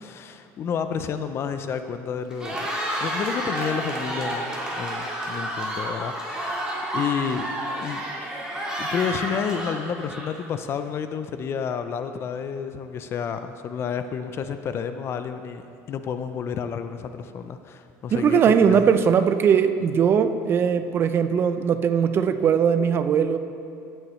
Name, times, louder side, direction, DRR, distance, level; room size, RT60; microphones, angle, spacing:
voice 1, 0.0-2.7 3.0-6.7 6.9-7.5 7.8-8.0 8.8-18.4 18.7-18.9, left 7 dB, 40° left, 9 dB, 0.4 m, -30 dB
Cheering, 2.3-10.5, right 1 dB, 10° right, 2.0 m, -30 dB
voice 2, 18.1-23.4, right 7 dB, 35° right, 10 dB, 0.5 m, -20 dB
14.5 x 7.8 x 3.1 m, 2.5 s
cardioid pair, 125°, 7 cm